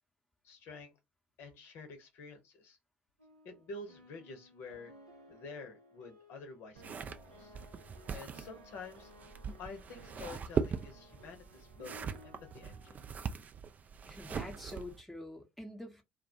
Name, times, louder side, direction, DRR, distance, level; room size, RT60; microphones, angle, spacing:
voice 1, 0.4-0.9 1.4-2.8 3.4-4.9 5.3-7.6 8.1-9.1 9.6-13.0, left 3 dB, 60° left, 0.7 m, -49 dB
sound 1, 3.2-13.3, equal, 85° right, 0.6 m, -58 dB
sound 2, 6.8-15.0, right 6 dB, 35° right, 0.3 m, -40 dB
voice 2, 14.1-16.0, left 1 dB, ahead, 0.8 m, -45 dB
2.2 x 2.1 x 2.6 m
figure-of-eight pair, 55°, 5 cm